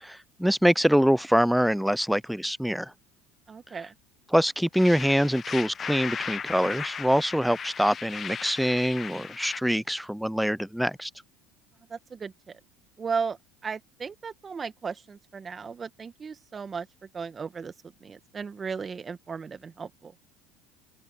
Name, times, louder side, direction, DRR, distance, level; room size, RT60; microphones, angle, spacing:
voice 1, 0.0-2.9 4.3-11.1, equal, ahead, 0.3 m, -24 dB
voice 2, 3.5-3.9 11.9-12.6 13.0-13.4 13.6-16.9 17.1-17.7 18.0-20.1, right 5 dB, 25° right, 1.4 m, -35 dB
sound 1, 4.7-9.6, left 7 dB, 30° left, 0.9 m, -36 dB
open air
supercardioid pair, 120°, 0 cm